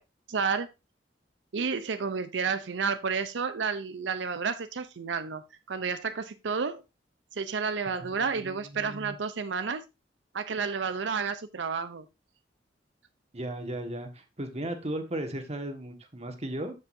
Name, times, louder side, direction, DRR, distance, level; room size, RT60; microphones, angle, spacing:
voice 1, 0.3-0.7 1.5-5.4 5.7-6.8 7.3-9.8 10.3-12.1, right 5 dB, 90° right, 0.6 m, -31 dB
voice 2, 8.0-9.2 13.3-16.7, right 1 dB, 40° right, 1.6 m, -36 dB
13.5 x 5.3 x 2.6 m
head